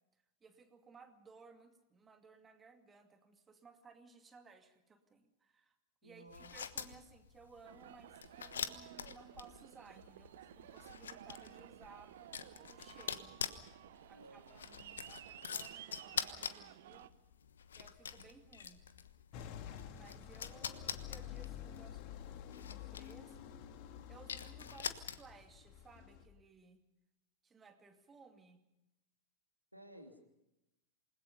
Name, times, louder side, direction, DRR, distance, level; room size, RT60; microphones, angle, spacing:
voice 1, 0.1-5.8 6.0-13.3 14.1-17.1 17.7-18.8 19.9-26.8 27.4-28.6, right 4 dB, 20° right, 6 dB, 2.4 m, -60 dB
voice 2, 6.0-6.5 14.1-14.7 29.7-30.2, right 1 dB, 90° right, 4 dB, 2.9 m, -56 dB
sound 1, 6.3-25.5, left 7 dB, 65° left, 1.2 m, -46 dB
Aircraft, 7.6-17.1, right 12 dB, 55° right, 1.0 m, -55 dB
sound 2, 19.3-26.2, left 10 dB, 45° left, 1.9 m, -50 dB
28.0 x 21.0 x 5.5 m, 0.92 s
figure-of-eight pair, 90°, 0 cm